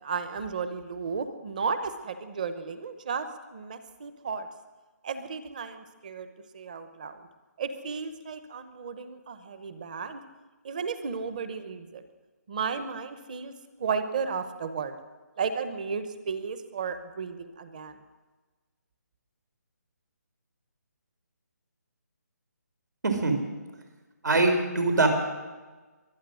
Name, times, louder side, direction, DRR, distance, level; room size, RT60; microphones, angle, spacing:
voice 1, 0.0-4.5 5.0-6.3 6.5-7.3 7.6-10.2 10.6-12.0 12.5-13.5 13.8-15.0 15.4-18.0, right 5 dB, 25° right, 11 dB, 0.9 m, -34 dB
voice 2, 24.2-25.1, right 3 dB, 85° right, 5 dB, 3.9 m, -22 dB
23.0 x 9.3 x 6.3 m, 1.3 s
hypercardioid pair, 175°, 10 cm